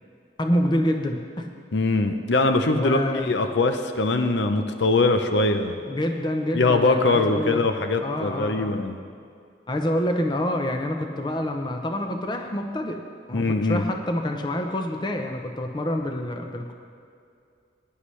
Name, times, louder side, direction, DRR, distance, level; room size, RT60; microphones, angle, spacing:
voice 1, 0.4-1.5 2.7-3.3 5.8-7.6 8.0-8.8 9.7-13.0 13.3-16.7, left 1 dB, 25° left, 4 dB, 0.7 m, -27 dB
voice 2, 1.7-5.8 6.5-9.0 13.3-13.8, left 3 dB, 70° left, 6 dB, 0.6 m, -22 dB
16.5 x 10.0 x 3.2 m, 2.3 s
head